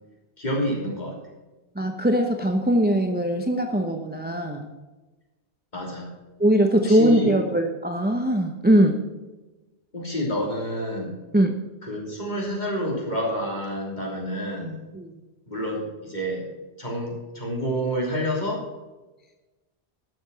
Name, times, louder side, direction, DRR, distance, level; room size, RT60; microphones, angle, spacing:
voice 1, 0.4-1.1 5.7-6.1 6.9-7.3 9.9-11.1 11.8-14.8 15.5-16.4 16.8-18.6, equal, 40° left, -2 dB, 3.4 m, -28 dB
voice 2, 1.8-4.7 6.4-9.0 11.3-11.5 14.9-15.1, right 1 dB, 10° right, 4 dB, 0.7 m, -21 dB
12.0 x 7.1 x 6.3 m, 1.1 s
omnidirectional pair, 1.1 m